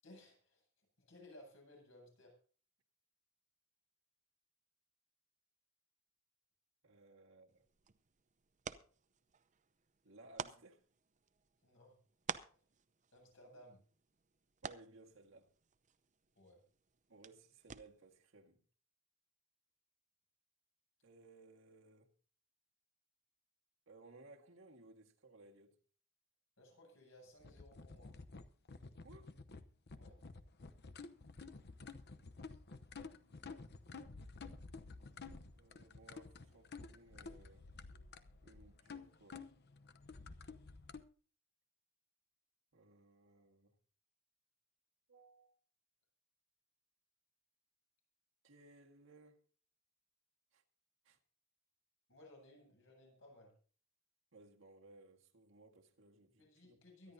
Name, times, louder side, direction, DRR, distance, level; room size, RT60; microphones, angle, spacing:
voice 1, 0.0-2.4 11.6-12.0 13.1-13.8 16.4-16.6 26.6-28.1 29.9-30.1 52.1-53.5 56.4-57.1, left 1 dB, 75° left, 8.0 m, -60 dB
voice 2, 6.8-7.7 10.0-10.9 14.6-15.5 17.1-18.6 21.0-22.1 23.9-25.8 29.0-29.3 32.2-32.5 35.5-37.7 38.4-39.5 42.7-43.7 45.1-45.5 48.4-49.4 50.5-50.6 51.0-51.2 54.3-57.1, right 2 dB, 75° right, 1.8 m, -61 dB
sound 1, 7.5-18.2, right 6 dB, 40° right, 0.6 m, -52 dB
sound 2, 27.4-41.0, left 4 dB, 55° left, 0.9 m, -52 dB
23.5 x 11.0 x 2.7 m
head